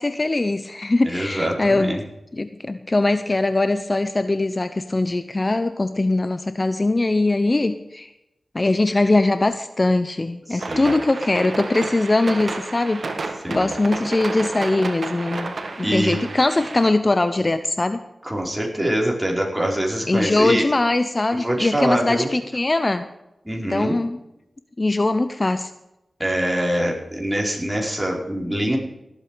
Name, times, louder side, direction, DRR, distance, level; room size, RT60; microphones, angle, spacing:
voice 1, 0.0-1.9 2.4-8.1 8.5-13.0 13.5-18.0 20.1-23.1 23.7-24.2 24.8-25.7, left 2 dB, 35° left, 10 dB, 0.8 m, -21 dB
voice 2, 1.0-2.0 10.5-10.9 13.4-13.7 15.8-16.2 18.2-20.6 21.3-22.3 23.4-24.0 26.2-28.8, right 1 dB, 10° right, -1 dB, 4.8 m, -24 dB
sound 1, 10.6-16.9, right 3 dB, 65° right, 1.7 m, -31 dB
18.0 x 8.3 x 5.1 m, 0.90 s
cardioid pair, 50°, 0 cm